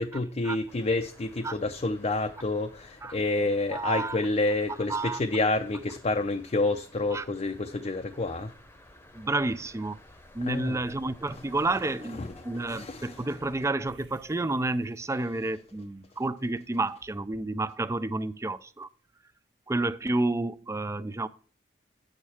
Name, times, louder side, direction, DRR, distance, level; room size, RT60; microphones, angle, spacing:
voice 1, 0.0-8.5 10.4-10.8 11.3-11.4 11.7-13.2, left 2 dB, 35° left, 0.5 m, -29 dB
sound 1, 0.7-13.7, left 1 dB, 15° left, 0.9 m, -53 dB
voice 2, 3.7-4.2 4.9-5.2 7.1-7.2 9.1-10.0 10.3-18.9 19.7-21.3, right 2 dB, 15° right, 0.4 m, -30 dB
sound 2, 13.9-18.4, right 1 dB, 70° right, 1.1 m, -61 dB
9.2 x 6.6 x 4.3 m
head